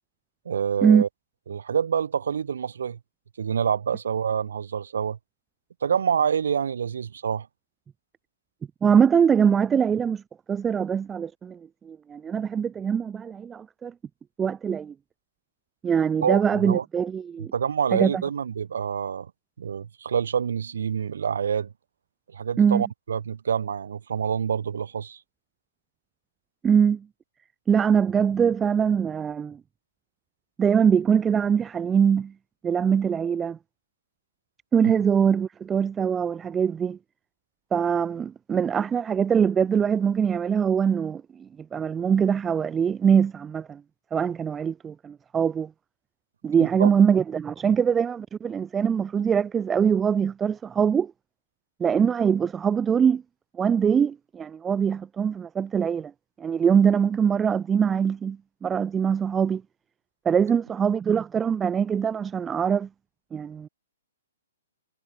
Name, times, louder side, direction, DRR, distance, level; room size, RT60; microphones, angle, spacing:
voice 1, 0.4-1.1 1.5-3.0 3.4-5.2 5.8-7.5 16.2-16.8 17.4-19.3 19.6-21.7 22.3-25.2 46.6-46.9, right 7 dB, 60° right, 4.8 m, -27 dB
voice 2, 8.8-10.2 10.5-11.6 11.8-13.9 14.4-14.9 15.8-17.5 17.9-18.2 22.6-22.8 26.6-27.0 27.7-29.6 30.6-32.3 32.6-33.6 34.7-37.0 37.7-43.8 44.1-45.7 46.4-51.1 51.8-53.2 53.6-56.1 56.4-59.6 60.3-62.9 63.3-63.7, right 7 dB, 15° right, 0.4 m, -23 dB
figure-of-eight pair, 120°, 0 cm